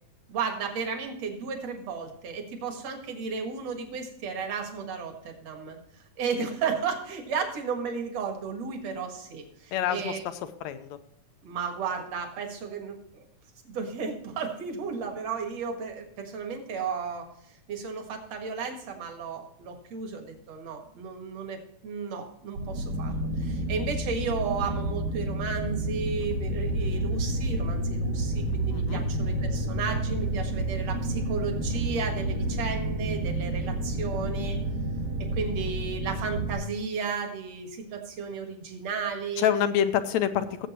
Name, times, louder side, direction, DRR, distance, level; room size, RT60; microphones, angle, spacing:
voice 1, 0.3-5.8 6.2-10.3 11.4-13.2 13.6-17.3 17.7-21.6 21.8-23.1 23.4-34.6 35.3-39.5, right 5 dB, 60° right, 4 dB, 2.7 m, -34 dB
voice 2, 9.7-10.1 10.6-11.0 28.7-29.0 39.4-40.7, left 9 dB, 75° left, 10 dB, 1.9 m, -26 dB
sound 1, 22.6-36.5, right 1 dB, 75° right, 3.0 m, -30 dB
17.5 x 7.9 x 3.0 m, 0.76 s
omnidirectional pair, 3.6 m